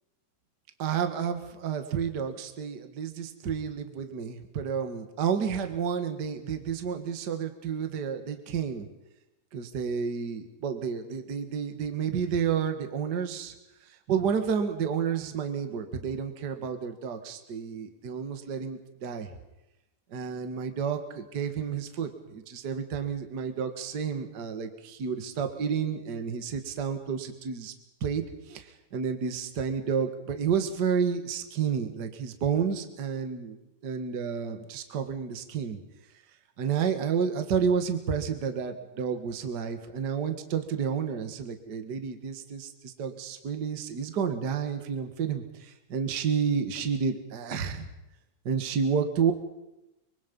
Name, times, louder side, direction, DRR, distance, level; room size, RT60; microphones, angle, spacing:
voice 1, 0.8-8.9 9.5-13.5 14.1-19.3 20.1-27.7 28.0-33.6 33.8-35.8 36.6-47.9 48.5-49.3, right 7 dB, 40° right, 7 dB, 1.8 m, -30 dB
24.5 x 24.0 x 5.5 m, 0.93 s
omnidirectional pair, 3.8 m